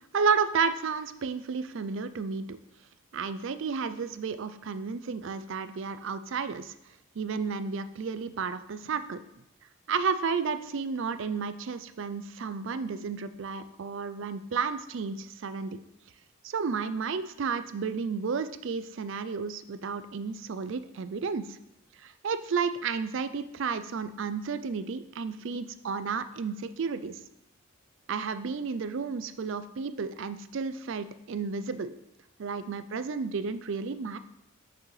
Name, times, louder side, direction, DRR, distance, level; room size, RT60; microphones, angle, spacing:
voice 1, 0.1-2.6 3.1-6.7 7.2-9.2 9.9-15.8 16.4-21.6 22.0-27.2 28.1-31.9 32.4-34.2, right 5 dB, 55° right, 12 dB, 0.4 m, -32 dB
7.4 x 6.0 x 3.2 m, 0.85 s
head